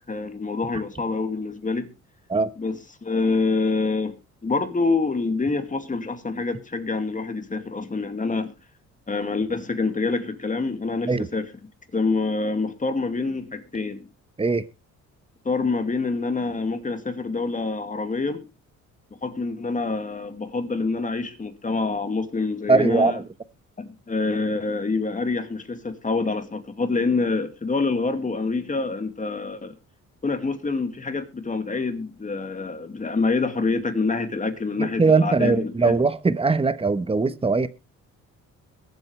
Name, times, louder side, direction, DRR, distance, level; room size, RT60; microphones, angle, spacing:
voice 1, 0.1-1.9 2.6-4.2 4.4-8.5 9.1-11.5 11.9-14.1 15.4-18.5 19.2-23.2 23.8-29.8 30.2-36.0, left 3 dB, 25° left, 2.4 m, -26 dB
voice 2, 22.7-23.2 34.8-37.7, right 4 dB, 20° right, 1.2 m, -20 dB
22.0 x 7.9 x 3.4 m
cardioid pair, 90°, 30 cm